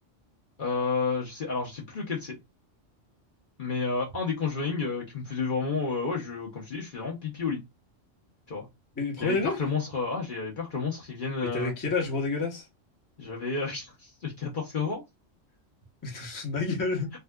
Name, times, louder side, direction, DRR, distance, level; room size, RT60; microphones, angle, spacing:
voice 1, 0.6-2.4 3.6-7.6 8.5-8.7 9.2-11.7 13.2-15.0, left 4 dB, 50° left, 0.8 m, -31 dB
voice 2, 9.0-9.6 11.4-12.7 16.0-17.1, left 3 dB, 20° left, 0.7 m, -29 dB
3.5 x 2.3 x 2.2 m
omnidirectional pair, 1.3 m